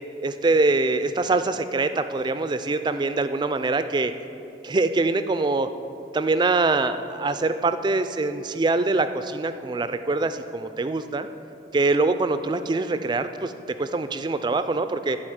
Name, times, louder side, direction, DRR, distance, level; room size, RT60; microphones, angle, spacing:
voice 1, 0.2-4.1 4.6-5.7 6.1-11.3 11.7-13.5 13.8-15.2, right 3 dB, 25° right, 10 dB, 0.3 m, -24 dB
12.0 x 4.1 x 7.9 m, 2.7 s
head